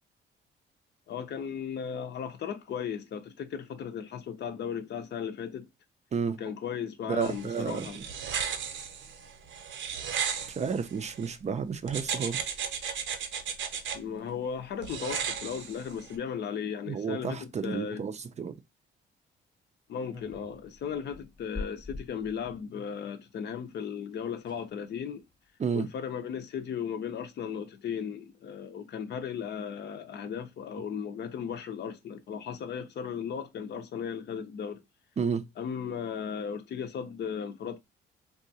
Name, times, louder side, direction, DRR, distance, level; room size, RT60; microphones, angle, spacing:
voice 1, 1.1-5.7 6.4-8.0 13.9-18.0 19.9-25.2 25.7-34.8 35.6-37.8, left 7 dB, 60° left, 0.6 m, -36 dB
voice 2, 7.0-8.0 10.6-12.5 16.9-18.5 25.6-25.9 35.2-35.4, right 6 dB, 35° right, 0.4 m, -31 dB
sound 1, 7.2-11.4 11.9-14.0 14.8-16.1, right 7 dB, 75° right, 0.6 m, -35 dB
sound 2, 20.1-22.6 23.8-23.9 24.1-24.2 24.4-24.7 25.2-25.5, left 3 dB, 20° left, 0.8 m, -44 dB
3.6 x 2.4 x 2.7 m
cardioid pair, 90°, 20 cm